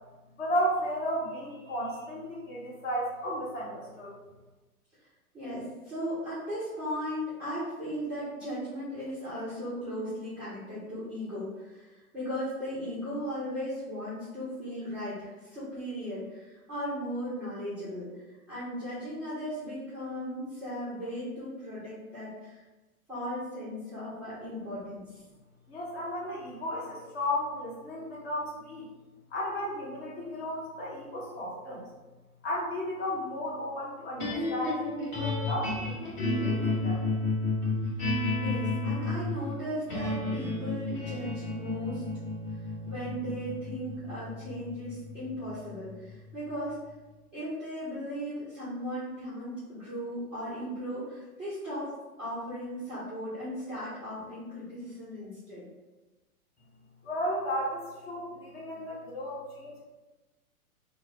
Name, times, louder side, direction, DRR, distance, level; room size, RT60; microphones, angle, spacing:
voice 1, 0.4-4.1 25.7-28.9 29.3-31.9 32.4-37.0 57.0-59.8, equal, 40° left, -5 dB, 1.2 m, -34 dB
voice 2, 5.3-18.1 18.5-22.6 23.1-25.2 38.4-42.0 42.8-46.8 47.3-55.6, equal, 5° right, -14 dB, 0.4 m, -37 dB
sound 1, 34.2-46.5, left 2 dB, 25° left, 1.0 m, -32 dB
3.0 x 2.0 x 3.6 m, 1.1 s
figure-of-eight pair, 120°, 45 cm